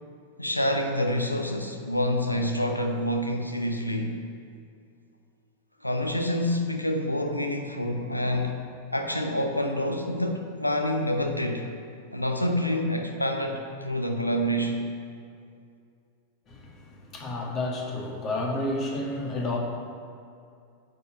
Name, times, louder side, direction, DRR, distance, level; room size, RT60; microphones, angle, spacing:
voice 1, 0.4-4.2 5.8-8.6 8.9-11.7 12.1-14.8, left 1 dB, 85° left, 4 dB, 0.8 m, -27 dB
voice 2, 16.5-19.6, left 2 dB, 30° left, 0 dB, 1.9 m, -31 dB
9.2 x 4.9 x 7.9 m, 2.4 s
figure-of-eight pair, 90°, 0 cm